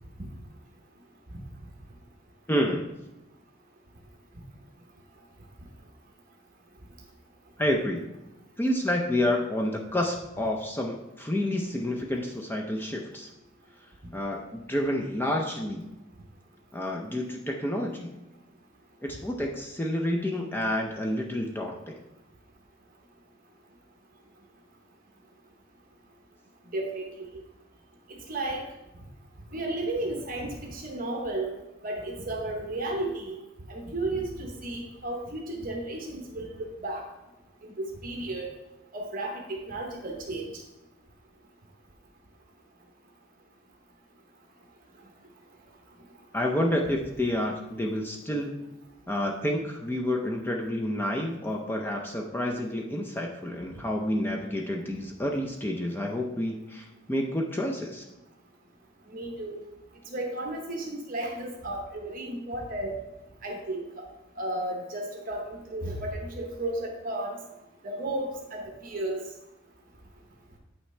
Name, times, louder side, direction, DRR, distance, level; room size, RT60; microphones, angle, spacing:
voice 1, 2.5-2.9 7.6-8.1 8.6-13.3 14.1-15.9 16.7-18.1 19.0-22.0 46.3-48.6 49.1-58.0, left 1 dB, 10° left, 1 dB, 0.5 m, -29 dB
voice 2, 26.7-27.3 28.3-28.6 29.5-31.5 31.8-33.4 33.7-37.0 37.6-38.5 38.9-40.5 59.1-59.6 60.1-62.9 63.4-64.0 64.4-67.4 67.8-69.2, right 1 dB, 45° right, 1 dB, 1.0 m, -33 dB
8.2 x 5.9 x 3.2 m, 0.95 s
head